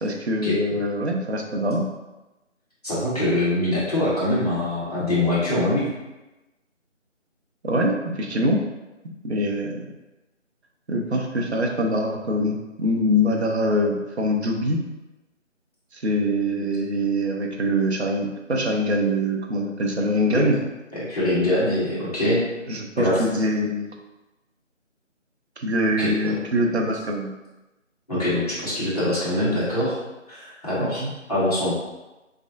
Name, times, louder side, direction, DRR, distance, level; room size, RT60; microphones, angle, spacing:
voice 1, 0.0-1.9 7.6-8.6 9.2-9.9 10.9-14.8 15.9-20.6 22.7-23.9 25.6-27.3 30.8-31.1, equal, 60° right, 1 dB, 0.6 m, -24 dB
voice 2, 2.8-5.9 20.3-20.4 20.9-22.4 23.0-23.2 26.0-26.3 28.1-30.0 30.3-31.0 31.3-31.7, left 1 dB, 30° left, -10 dB, 1.2 m, -23 dB
3.5 x 3.3 x 2.5 m, 1.0 s
figure-of-eight pair, 165°, 38 cm